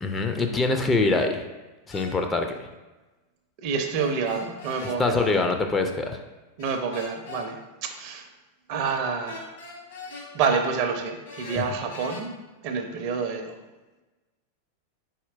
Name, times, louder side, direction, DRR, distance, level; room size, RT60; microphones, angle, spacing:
voice 1, 0.0-1.4 1.9-2.5 5.0-6.2 11.6-11.7, left 3 dB, 15° left, 4 dB, 0.4 m, -24 dB
sound 1, 1.9-2.1 3.9-5.0 6.6-7.4 9.3-10.3 11.2-12.2, left 3 dB, 60° left, 1.0 m, -41 dB
voice 2, 3.6-5.3 6.6-8.3 8.7-9.5 10.3-12.3 12.6-13.6, right 5 dB, 45° right, 5 dB, 0.5 m, -28 dB
4.2 x 4.2 x 2.4 m, 1.1 s
figure-of-eight pair, 90°, 0 cm